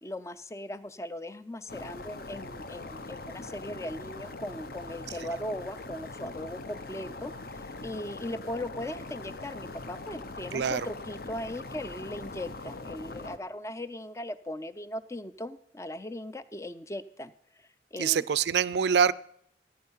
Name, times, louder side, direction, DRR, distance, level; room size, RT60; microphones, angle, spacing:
voice 1, 0.0-18.3, left 1 dB, 15° left, 14 dB, 0.5 m, -39 dB
sound 1, 1.7-13.4, left 2 dB, 55° left, 0.8 m, -42 dB
voice 2, 18.0-19.1, right 7 dB, 65° right, 20 dB, 0.4 m, -24 dB
15.0 x 9.6 x 5.6 m, 0.72 s
head